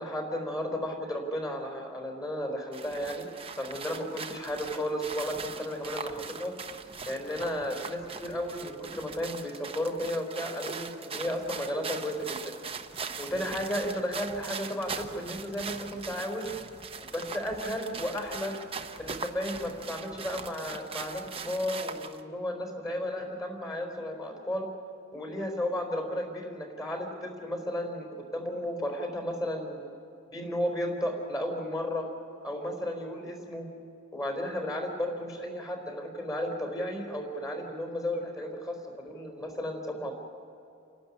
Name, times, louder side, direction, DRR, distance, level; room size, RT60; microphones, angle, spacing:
voice 1, 0.0-3.3 3.6-6.5 7.1-12.4 13.2-16.5 17.1-18.6 19.0-24.7 25.1-29.8 30.3-32.1 32.4-33.7 34.1-40.1, equal, 15° left, 3 dB, 4.2 m, -33 dB
sound 1, 2.7-22.2, right 5 dB, 25° right, 1.0 m, -41 dB
29.5 x 12.5 x 10.0 m, 2.6 s
head